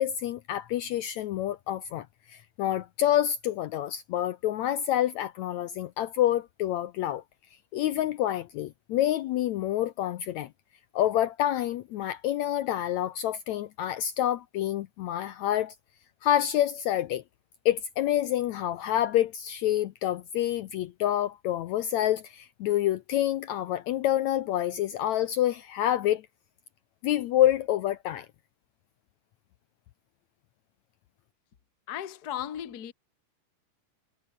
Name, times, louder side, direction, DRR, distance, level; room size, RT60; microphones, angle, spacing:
voice 1, 0.0-7.2 7.7-10.5 10.9-15.7 16.2-17.2 17.6-26.2 27.0-28.3, left 12 dB, 75° left, 1.8 m, -27 dB
voice 2, 31.9-32.9, left 10 dB, 50° left, 1.1 m, -36 dB
omnidirectional pair, 3.9 m